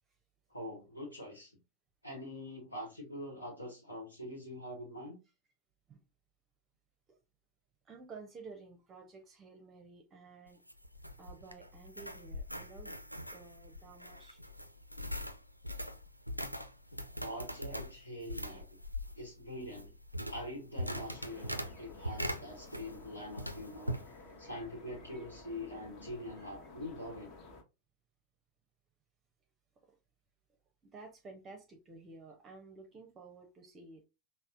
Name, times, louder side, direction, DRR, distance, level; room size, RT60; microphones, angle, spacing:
voice 1, 0.5-1.6 2.0-5.2 17.2-18.7 19.1-20.0 20.3-24.0 24.4-27.3, left 1 dB, 85° left, 1.0 m, -44 dB
voice 2, 7.8-10.6 11.2-13.0 13.3-14.5 16.9-17.0 22.1-22.3 26.4-26.6 29.8-30.0 30.8-34.0, right 4 dB, 25° right, 0.6 m, -53 dB
sound 1, 10.5-23.1 23.4-24.1, equal, 90° right, 0.4 m, -41 dB
sound 2, 20.9-27.6, left 3 dB, 40° left, 0.9 m, -53 dB
5.4 x 2.0 x 2.5 m
figure-of-eight pair, 90°, 0 cm